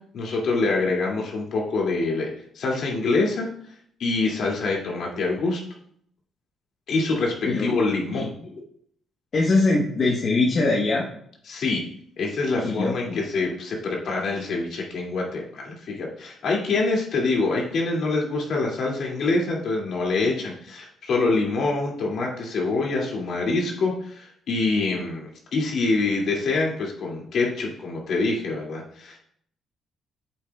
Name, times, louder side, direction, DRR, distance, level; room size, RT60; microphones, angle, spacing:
voice 1, 0.1-2.3 2.5-3.5 4.0-5.6 6.9-8.3 11.5-11.8 12.2-29.2, left 3 dB, 65° left, -2 dB, 2.2 m, -25 dB
voice 2, 9.3-11.1 12.6-13.2, left 3 dB, 50° left, -2 dB, 1.1 m, -22 dB
8.8 x 7.0 x 2.3 m, 0.66 s
cardioid pair, 90°, 0 cm